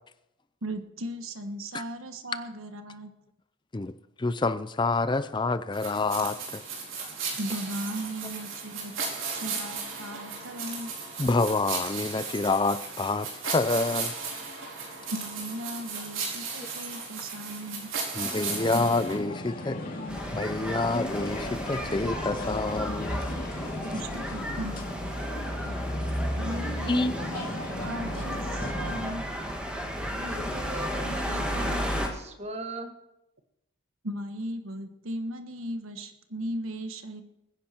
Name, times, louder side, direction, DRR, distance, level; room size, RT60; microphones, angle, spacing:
voice 1, 0.6-3.1 7.3-8.9 9.3-10.9 15.1-17.9 23.9-24.8 26.4-29.2 34.0-37.2, right 1 dB, 85° right, 8 dB, 1.4 m, -37 dB
voice 2, 3.7-6.6 11.2-14.1 18.2-19.8 20.3-23.3 26.9-27.1, left 3 dB, 20° left, 13 dB, 0.4 m, -27 dB
sound 1, 5.7-19.2, right 5 dB, 70° right, 4.5 m, -36 dB
sound 2, 18.4-29.1, left 2 dB, 40° left, 2.6 m, -37 dB
sound 3, 20.1-32.1, equal, 5° right, 1.8 m, -33 dB
voice 3, 30.1-32.9, right 1 dB, 30° right, 5 dB, 1.5 m, -38 dB
21.5 x 10.0 x 4.4 m, 0.88 s
head